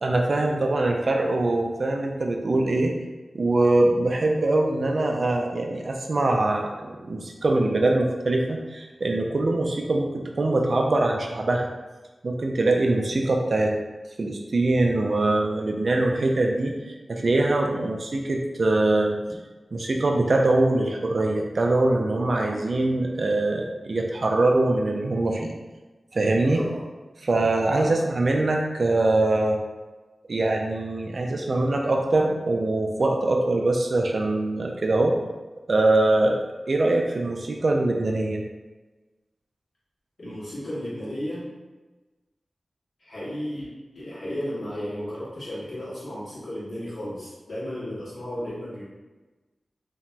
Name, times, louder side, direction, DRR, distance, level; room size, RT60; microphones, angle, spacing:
voice 1, 0.0-2.9 3.3-11.7 12.2-13.7 14.2-16.7 17.1-19.2 19.7-25.5 26.1-26.6 27.2-29.6 30.3-35.1 35.7-36.3 36.7-38.4, right 2 dB, 60° right, 1 dB, 0.3 m, -23 dB
voice 2, 26.3-26.9 27.6-28.0 40.2-41.5 43.0-43.7 43.9-48.8, equal, 65° left, -10 dB, 1.5 m, -34 dB
2.9 x 2.8 x 2.2 m, 1.2 s
wide cardioid pair, 60°, 0 cm